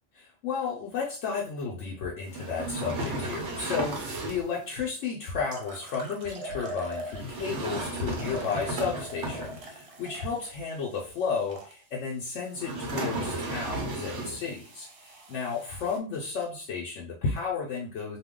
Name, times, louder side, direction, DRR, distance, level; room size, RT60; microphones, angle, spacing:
voice 1, 0.1-18.2, left 5 dB, 85° left, -2 dB, 1.0 m, -33 dB
sound 1, 2.3-4.6 7.1-9.8 12.6-14.5, right 2 dB, 75° right, 1.0 m, -34 dB
sound 2, 3.8-4.3 5.0-5.1 5.5-7.6 8.1-11.7 12.6-16.0, right 1 dB, 50° right, 0.4 m, -44 dB
2.6 x 2.2 x 3.6 m, 0.37 s
omnidirectional pair, 1.2 m